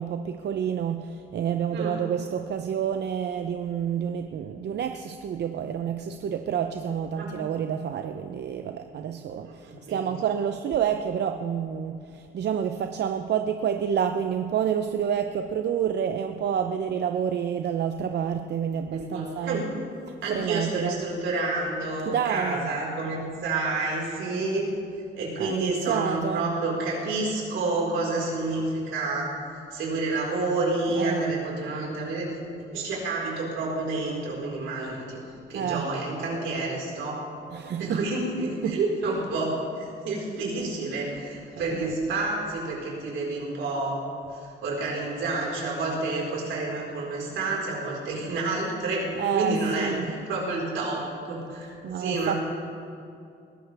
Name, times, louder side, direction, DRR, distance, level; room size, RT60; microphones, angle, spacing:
voice 1, 0.0-19.7 20.3-21.0 22.1-22.7 25.4-26.5 30.9-31.4 35.5-35.9 37.5-38.0 38.6-38.8 41.7-41.9 49.2-50.1 51.8-52.4, right 8 dB, 60° right, 7 dB, 0.7 m, -29 dB
voice 2, 1.7-2.0 7.2-7.3 9.5-9.6 9.9-10.1 18.9-19.7 20.2-24.7 25.1-29.3 29.7-32.3 32.7-35.2 35.5-37.2 37.8-51.7 51.9-52.4, right 2 dB, 80° right, -3 dB, 4.6 m, -29 dB
20.5 x 15.5 x 3.4 m, 2.5 s
cardioid pair, 90°, 20 cm